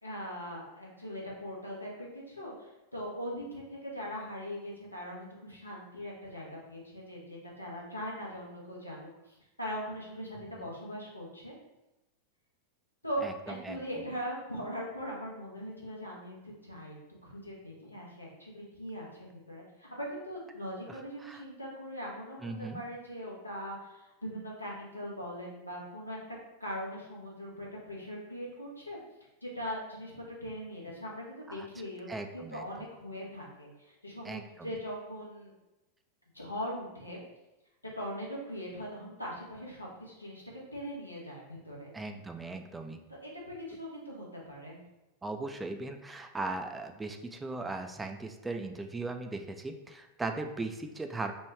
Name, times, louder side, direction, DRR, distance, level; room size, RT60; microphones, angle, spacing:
voice 1, 0.0-11.5 13.0-26.2 26.6-29.0 29.4-35.5 36.3-37.2 37.9-40.4 40.7-41.9 43.1-44.8, equal, 85° left, -4 dB, 0.8 m, -41 dB
voice 2, 10.4-10.7 13.2-13.8 20.9-21.4 22.4-22.8 31.5-31.7 32.1-32.7 34.2-34.7 41.9-43.0 45.2-51.3, right 3 dB, 10° right, 6 dB, 0.3 m, -38 dB
3.2 x 2.2 x 3.3 m, 1.0 s
figure-of-eight pair, 90°, 0 cm